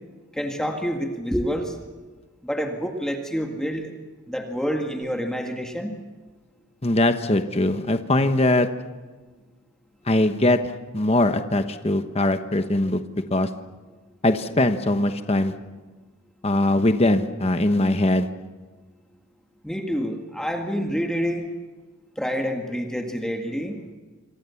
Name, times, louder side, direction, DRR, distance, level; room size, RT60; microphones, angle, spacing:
voice 1, 0.3-1.7 2.4-3.9 4.3-5.9 19.6-21.5 22.2-23.8, equal, 5° left, 3 dB, 1.9 m, -27 dB
voice 2, 6.8-8.7 10.1-10.6 10.9-13.0 13.3-13.5 14.2-15.5 16.4-18.3, left 1 dB, 25° left, 8 dB, 1.1 m, -21 dB
27.0 x 25.0 x 7.1 m, 1.3 s
head